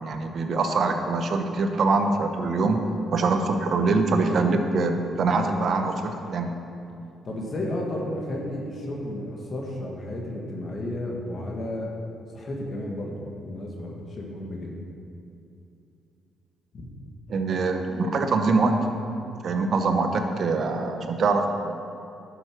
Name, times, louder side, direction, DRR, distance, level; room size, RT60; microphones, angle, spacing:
voice 1, 0.0-6.5 17.3-18.8 19.4-21.5, right 3 dB, 55° right, 5 dB, 1.1 m, -24 dB
voice 2, 7.2-11.9 12.3-14.8 16.7-16.9, left 1 dB, 45° left, -1 dB, 1.9 m, -33 dB
11.5 x 7.1 x 6.1 m, 2.7 s
cardioid pair, 90°, 0 cm